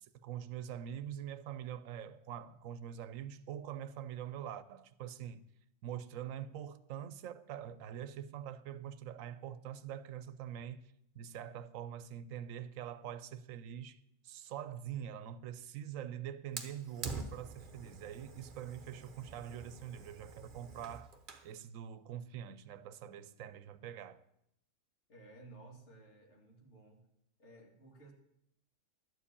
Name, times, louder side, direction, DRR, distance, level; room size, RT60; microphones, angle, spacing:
voice 1, 0.0-5.5 5.8-21.1 21.4-24.2, right 10 dB, 85° right, 1.0 m, -44 dB
Fire, 16.6-21.5, right 4 dB, 40° right, 1.0 m, -47 dB
voice 2, 25.1-27.1 27.4-28.1, right 2 dB, 60° left, 2.3 m, -56 dB
12.0 x 4.8 x 8.5 m
omnidirectional pair, 1.4 m